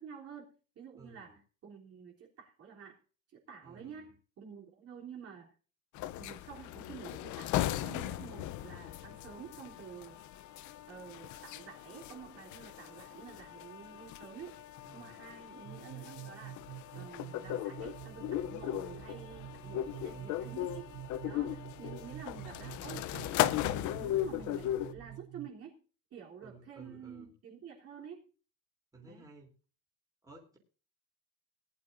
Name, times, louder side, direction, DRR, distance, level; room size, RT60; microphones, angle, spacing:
voice 1, 0.0-3.0 3.3-5.5 6.2-10.4 10.9-14.5 14.9-16.6 16.9-20.8 21.2-25.8 26.1-28.2 29.0-29.2, right 7 dB, 40° right, -2 dB, 3.4 m, -50 dB
voice 2, 1.0-1.4 3.6-4.1 14.8-15.2 19.6-20.5 26.4-27.3 28.9-29.5 30.2-30.6, right 2 dB, 10° right, -2 dB, 3.3 m, -54 dB
sound 1, 5.9-24.9, left 13 dB, 55° left, 0.7 m, -37 dB
sound 2, 15.6-25.5, right 16 dB, 55° right, 0.6 m, -48 dB
sound 3, 17.8-25.2, right 5 dB, 75° right, 3.9 m, -56 dB
20.0 x 11.0 x 2.6 m, 0.38 s
cardioid pair, 155°, 36 cm